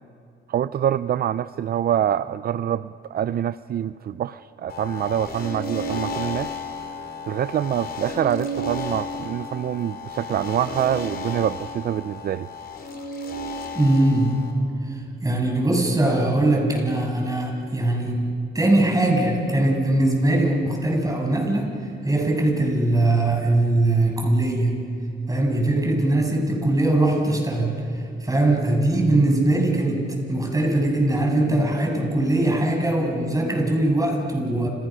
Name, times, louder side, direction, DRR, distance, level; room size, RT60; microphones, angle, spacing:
voice 1, 0.5-6.5 7.3-12.5, right 10 dB, 50° right, 14 dB, 0.5 m, -25 dB
sound 1, 4.7-14.5, left 2 dB, 50° left, 5.0 m, -33 dB
voice 2, 13.7-14.4 14.9-18.3 18.5-21.7 22.0-24.8 25.3-27.8 28.2-34.7, right 1 dB, 15° right, 1 dB, 7.8 m, -21 dB
30.0 x 29.5 x 6.3 m, 2.6 s
cardioid pair, 90°, 20 cm